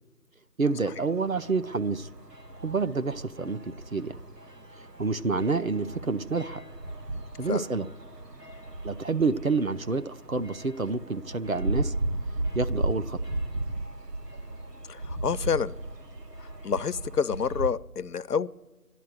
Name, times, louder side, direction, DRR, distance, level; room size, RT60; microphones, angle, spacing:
voice 1, 0.6-2.1 2.6-4.2 5.0-6.6 7.4-7.9 8.8-11.9 12.5-13.2, right 4 dB, 60° right, 11 dB, 0.6 m, -28 dB
sound 1, 0.6-17.7, right 2 dB, 80° right, 1.5 m, -36 dB
voice 2, 14.9-15.7 16.6-18.5, left 6 dB, 75° left, 17 dB, 0.6 m, -28 dB
12.5 x 11.0 x 8.0 m, 1.2 s
figure-of-eight pair, 180°, 48 cm